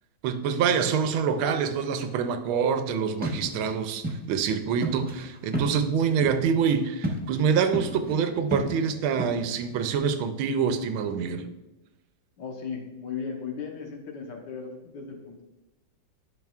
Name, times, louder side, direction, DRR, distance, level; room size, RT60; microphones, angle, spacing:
voice 1, 0.2-11.5, right 6 dB, 90° right, 9 dB, 1.4 m, -26 dB
sound 1, 3.2-3.7 4.0-4.2 4.5-4.6 4.8-6.7 7.0-7.4 7.7-8.2 8.5-9.7, right 1 dB, 10° right, 0.6 m, -32 dB
voice 2, 12.4-15.4, left 6 dB, 65° left, 1 dB, 1.6 m, -36 dB
10.5 x 6.0 x 2.4 m, 1.0 s
omnidirectional pair, 2.2 m